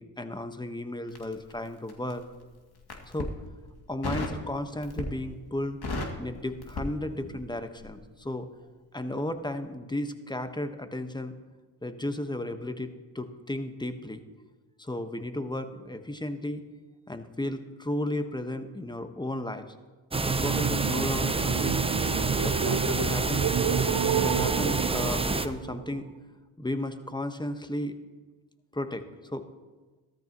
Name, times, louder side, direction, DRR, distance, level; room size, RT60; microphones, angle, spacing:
voice 1, 0.0-2.2 3.1-3.3 3.9-5.8 6.2-8.5 8.9-11.3 11.8-14.2 14.8-16.7 17.1-19.7 20.2-21.8 22.4-23.5 24.1-26.1 26.6-28.0 28.7-29.4, left 1 dB, 10° left, 8 dB, 1.2 m, -34 dB
Crackle, 1.1-2.2 2.8-3.4 4.0-4.4 4.8-5.3 5.6-7.5 7.8-8.0, left 2 dB, 50° left, 2.5 m, -35 dB
sound 1, 20.1-25.5, right 3 dB, 10° right, 0.7 m, -28 dB
sound 2, 20.1-26.1, right 9 dB, 45° right, 0.8 m, -30 dB
15.5 x 13.5 x 3.0 m, 1.3 s
supercardioid pair, 50°, 49 cm